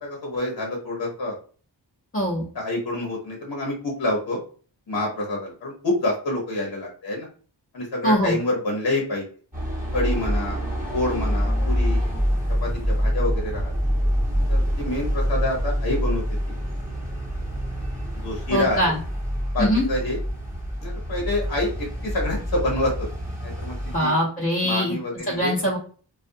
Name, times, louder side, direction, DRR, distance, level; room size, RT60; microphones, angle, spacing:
voice 1, 0.0-1.4 2.5-4.4 4.9-7.3 7.7-9.2 9.9-10.6 10.9-12.0 12.6-13.7 14.5-16.2 18.2-18.9 19.5-20.2 20.8-22.9 23.4-24.1 24.6-25.5, left 1 dB, 55° left, -1 dB, 0.8 m, -27 dB
voice 2, 2.1-2.5 8.0-8.4 18.5-19.0 19.6-19.8 23.9-25.0 25.3-25.8, equal, 30° left, -5 dB, 0.8 m, -22 dB
sound 1, 9.5-24.0, equal, 20° right, 1.1 m, -26 dB
2.4 x 2.2 x 2.6 m, 0.41 s
wide cardioid pair, 60°, 43 cm